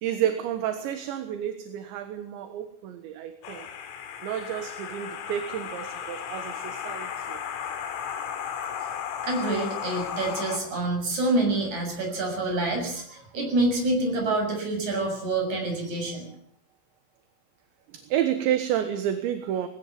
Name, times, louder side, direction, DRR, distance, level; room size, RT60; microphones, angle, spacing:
voice 1, 0.0-3.7 4.2-7.4 17.9-19.7, right 10 dB, 75° right, 8 dB, 3.5 m, -30 dB
sound 1, 3.4-10.6, left 8 dB, 75° left, 4.5 m, -35 dB
voice 2, 9.2-16.3, right 2 dB, 35° right, 2 dB, 8.0 m, -27 dB
20.5 x 17.0 x 8.7 m, 0.65 s
omnidirectional pair, 5.6 m